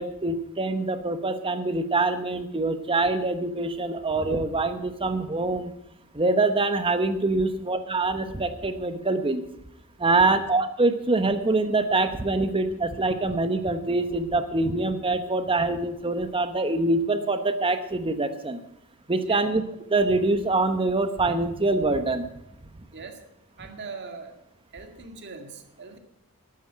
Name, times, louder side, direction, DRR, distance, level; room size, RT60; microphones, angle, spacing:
voice 1, 0.0-5.7 6.1-9.4 10.0-18.6 19.1-19.6 19.9-22.3, right 2 dB, 25° right, 9 dB, 1.1 m, -24 dB
voice 2, 23.6-24.4 24.7-26.0, right 4 dB, 50° right, 5 dB, 2.0 m, -40 dB
12.0 x 9.6 x 7.8 m, 0.78 s
head